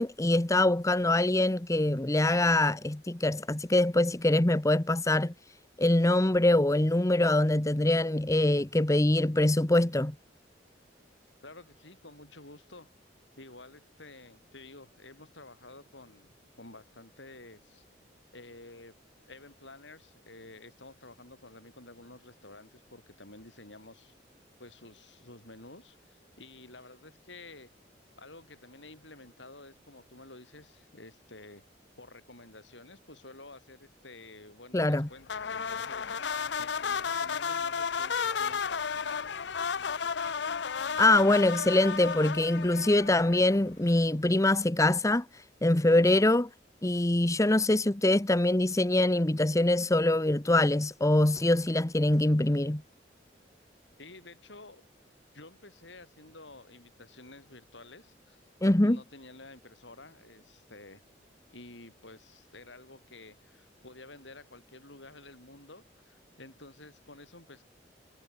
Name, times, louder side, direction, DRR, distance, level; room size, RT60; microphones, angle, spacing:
voice 1, 0.0-5.3 5.8-10.1 34.7-35.1 41.0-45.3 45.6-46.5 46.8-52.8 58.6-59.0, left 1 dB, 15° left, 0.9 m, -24 dB
voice 2, 11.4-12.9 13.4-17.8 18.3-18.9 19.3-24.1 24.6-27.7 28.2-31.6 32.0-39.0 54.0-54.8 55.3-58.4 58.8-61.0 61.5-67.6, left 2 dB, 85° left, 7.5 m, -51 dB
sound 1, 35.3-43.7, left 6 dB, 65° left, 0.7 m, -33 dB
head